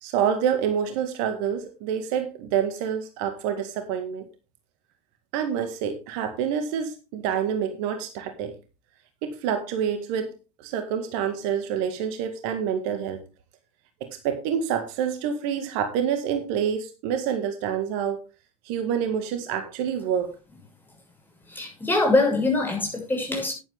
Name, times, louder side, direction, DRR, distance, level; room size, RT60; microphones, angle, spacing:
voice 1, 0.0-4.3 5.3-8.5 9.2-13.2 14.0-18.2 18.7-20.4, right 8 dB, 55° right, 8 dB, 1.8 m, -27 dB
voice 2, 21.5-23.5, left 2 dB, 10° left, 0 dB, 7.1 m, -23 dB
11.0 x 10.5 x 3.6 m, 0.29 s
figure-of-eight pair, 80°, 19 cm